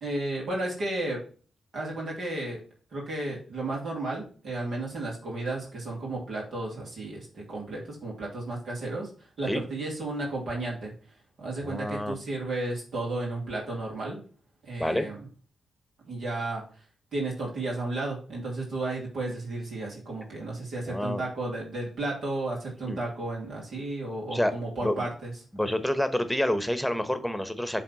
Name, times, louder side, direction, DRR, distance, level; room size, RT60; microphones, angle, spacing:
voice 1, 0.0-1.2 1.7-2.6 2.9-9.1 9.4-10.9 11.4-14.2 14.6-15.3 16.0-16.6 17.1-25.3 25.6-25.8, right 2 dB, 70° right, -3 dB, 2.6 m, -33 dB
voice 2, 11.6-12.2 14.8-15.1 20.9-21.2 22.9-23.0 24.3-24.5 24.8-25.1 25.5-27.8, left 1 dB, 5° left, 10 dB, 1.1 m, -28 dB
7.3 x 3.5 x 5.4 m, 0.40 s
supercardioid pair, 45°, 0 cm